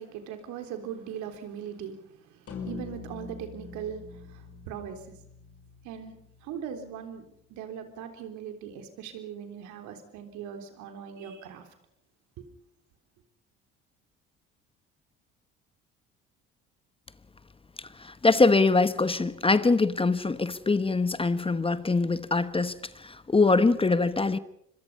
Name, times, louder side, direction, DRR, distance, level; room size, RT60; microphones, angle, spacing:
voice 1, 0.0-5.1 5.8-6.2 6.4-7.2 7.5-11.6 12.4-12.5, right 8 dB, 75° right, 3.7 m, -40 dB
sound 1, 2.5-7.0, left 5 dB, 50° left, 5.3 m, -44 dB
voice 2, 17.8-24.4, left 3 dB, 20° left, 1.1 m, -23 dB
26.0 x 22.5 x 5.5 m
hypercardioid pair, 70°, 30 cm